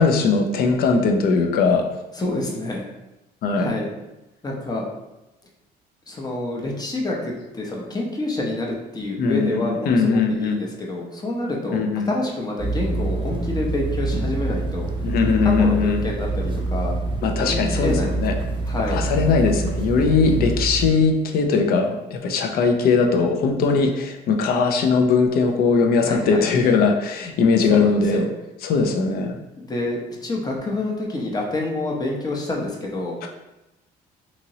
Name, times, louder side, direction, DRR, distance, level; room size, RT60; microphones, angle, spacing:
voice 1, 0.0-1.9 3.4-3.7 9.2-10.7 11.7-12.1 15.0-16.1 17.2-18.4 18.9-28.3 28.6-29.4 33.2-33.3, left 4 dB, 65° left, 4 dB, 0.5 m, -20 dB
voice 2, 2.2-2.9 3.6-3.9 4.4-4.9 6.1-14.9 15.4-16.9 17.4-18.2 18.7-19.0 26.0-26.5 27.7-28.3 29.6-33.2, left 2 dB, 25° left, -1 dB, 0.7 m, -27 dB
sound 1, 12.6-20.9, right 2 dB, 30° right, 0.4 m, -26 dB
2.9 x 2.8 x 2.7 m, 0.96 s
cardioid pair, 110°, 17 cm